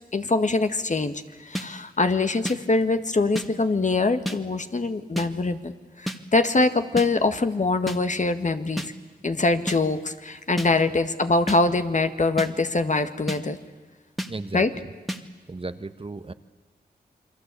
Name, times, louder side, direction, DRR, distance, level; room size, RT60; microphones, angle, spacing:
voice 1, 0.1-5.7 6.0-8.9 9.2-13.6 14.5-14.7, left 3 dB, 45° left, 8 dB, 1.8 m, -23 dB
sound 1, 1.6-1.7 2.5-2.6 3.4-3.5 4.3-4.4 5.2-5.3 6.1-6.2 7.0-7.1 7.9-8.0 8.8-8.9 9.7-9.8 10.6-10.7 11.5-11.6 12.4-12.5 13.3-13.4 14.2-14.3 15.1-15.2, equal, ahead, 2.1 m, -29 dB
voice 2, 14.3-14.8 15.5-16.3, right 3 dB, 30° right, 11 dB, 1.2 m, -35 dB
28.5 x 22.5 x 8.4 m, 1.4 s
cardioid pair, 55°, 17 cm